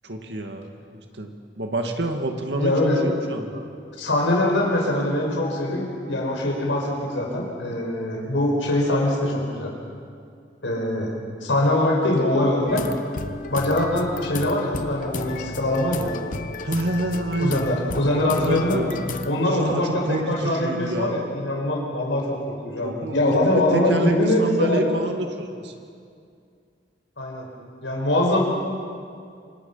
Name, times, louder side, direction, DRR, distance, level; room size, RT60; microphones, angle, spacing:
voice 1, 0.0-0.7 0.9-3.7 16.6-17.6 18.4-19.0 19.3-21.2 22.8-25.7, right 1 dB, 65° right, 4 dB, 2.2 m, -28 dB
voice 2, 2.6-3.0 4.0-9.7 10.6-12.8 13.5-16.1 17.4-18.9 19.3-24.9 27.2-27.5 27.8-28.4, left 1 dB, 90° left, 0 dB, 5.6 m, -23 dB
sound 1, 12.7-19.3, left 2 dB, 45° left, 1.1 m, -33 dB
28.0 x 25.5 x 5.8 m, 2.3 s
head